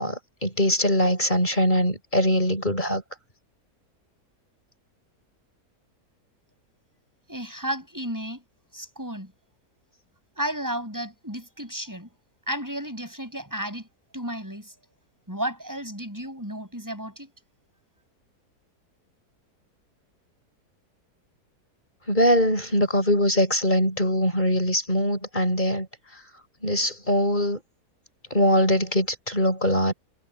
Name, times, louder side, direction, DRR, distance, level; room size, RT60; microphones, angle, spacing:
voice 1, 0.0-3.0 22.1-25.9 26.6-27.6 28.3-29.9, equal, 30° left, 6.4 m, -22 dB
voice 2, 7.3-8.4 8.7-9.3 10.3-12.1 12.5-13.9 14.1-14.7 15.3-17.3, right 1 dB, 10° right, 7.4 m, -33 dB
omnidirectional pair, 1.7 m